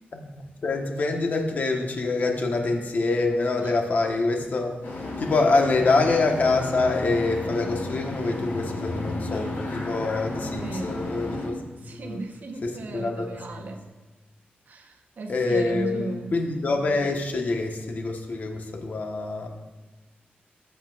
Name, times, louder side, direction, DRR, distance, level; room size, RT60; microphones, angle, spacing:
voice 1, 0.1-12.2 12.6-13.7 15.3-19.5, left 3 dB, 50° left, 2 dB, 1.3 m, -26 dB
sound 1, 4.8-11.5, left 2 dB, 85° left, 4.1 m, -33 dB
voice 2, 10.5-10.9 11.8-13.8 14.7-16.4, right 3 dB, 55° right, 4 dB, 1.1 m, -35 dB
19.0 x 8.2 x 2.5 m, 1.2 s
wide cardioid pair, 140°, 4 cm